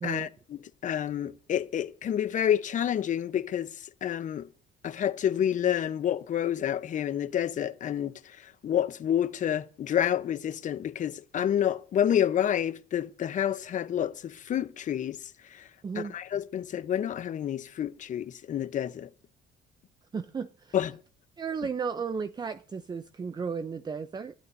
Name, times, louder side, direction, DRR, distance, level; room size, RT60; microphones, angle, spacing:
voice 1, 0.0-3.7 4.0-4.5 4.8-8.1 8.6-15.2 15.5-15.6 15.9-19.1 20.7-20.9, left 10 dB, 50° left, 0.9 m, -29 dB
voice 2, 15.8-16.1 20.1-20.8 21.4-24.3, right 5 dB, 25° right, 0.6 m, -34 dB
21.0 x 12.5 x 2.7 m
cardioid pair, 110°, 17 cm